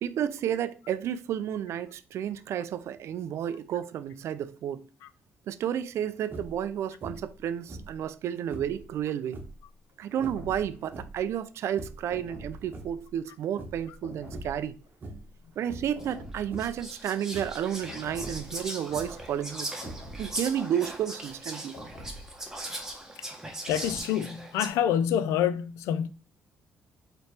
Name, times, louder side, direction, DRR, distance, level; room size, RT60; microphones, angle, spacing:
voice 1, 0.0-4.8 5.5-9.4 10.0-14.8 15.6-19.7 20.2-21.8, right 9 dB, 65° right, 0.3 m, -31 dB
sound 1, 6.3-6.7 7.0-7.4 7.7-8.8 9.2-9.6 10.2-11.3 11.6-12.1 12.5-13.3 13.6-13.9 14.2-14.7 15.0-15.4 15.7-16.0 16.5-16.9 17.2-17.6 18.2-19.3 19.8-20.3, right 2 dB, 40° right, 0.9 m, -43 dB
sound 2, 8.7-9.0 10.2-10.9 12.1-12.9 14.0-14.8 15.9-16.7 17.9-18.7 19.8-20.6 21.7-22.5 23.7-24.0, equal, 55° left, 1.5 m, -45 dB
Whispering, 16.0-16.1 16.6-24.7, right 1 dB, 10° right, 1.1 m, -39 dB
voice 2, 23.7-26.1, left 9 dB, 85° left, 0.3 m, -27 dB
4.4 x 3.0 x 3.2 m
cardioid pair, 75°, 5 cm